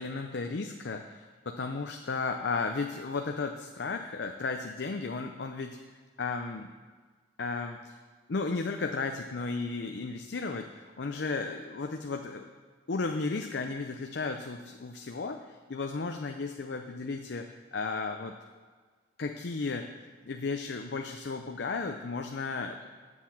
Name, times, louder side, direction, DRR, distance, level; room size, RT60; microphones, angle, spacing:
voice 1, 0.0-5.8 6.2-6.7 7.4-8.0 8.3-12.5 12.9-18.4 19.2-19.9 20.2-22.9, left 4 dB, 70° left, 5 dB, 0.6 m, -34 dB
8.0 x 7.3 x 7.2 m, 1.5 s
head